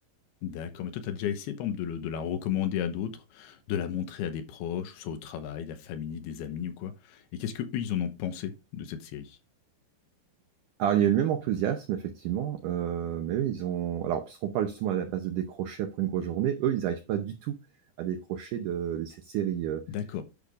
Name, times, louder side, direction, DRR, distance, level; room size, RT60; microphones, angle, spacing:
voice 1, 0.4-9.4 19.9-20.2, left 9 dB, 80° left, 2.9 m, -33 dB
voice 2, 10.8-17.6 18.0-19.8, right 10 dB, 80° right, 1.8 m, -29 dB
10.5 x 6.5 x 2.5 m
omnidirectional pair, 4.7 m